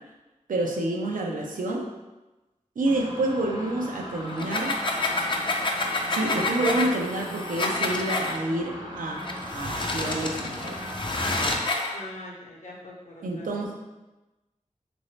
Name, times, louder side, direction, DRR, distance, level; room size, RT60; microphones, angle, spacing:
voice 1, 0.5-1.9 2.8-4.7 6.1-9.2 9.5-10.8 13.2-13.7, right 2 dB, 85° right, 0 dB, 0.5 m, -28 dB
sound 1, 2.8-11.5, equal, 35° right, 0.6 m, -39 dB
sound 2, 4.3-8.4 9.2-11.9, left 2 dB, 35° left, 0.5 m, -28 dB
voice 2, 11.9-13.7, left 1 dB, 65° left, -3 dB, 0.8 m, -43 dB
3.1 x 2.6 x 3.2 m, 1.1 s
cardioid pair, 45°, 14 cm